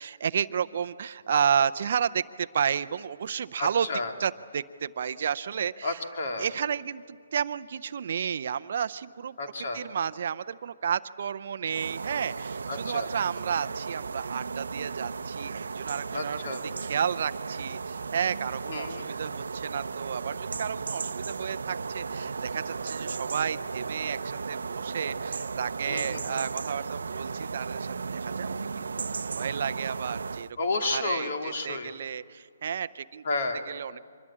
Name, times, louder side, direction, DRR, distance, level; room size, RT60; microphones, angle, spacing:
voice 1, 0.0-3.9 4.2-6.0 6.4-9.4 9.7-16.4 16.8-28.9 29.3-30.5 30.8-33.2 33.7-34.0, right 7 dB, 45° right, 14 dB, 0.6 m, -31 dB
voice 2, 3.6-4.1 5.8-6.5 9.4-9.8 12.7-13.1 16.1-16.6 18.7-19.1 25.9-26.5 30.6-31.9 33.2-33.6, left 3 dB, 50° left, 3 dB, 2.5 m, -31 dB
sound 1, 11.7-30.5, right 4 dB, 85° right, 0.7 m, -35 dB
25.0 x 21.5 x 8.6 m, 2.1 s
hypercardioid pair, 170°, 0 cm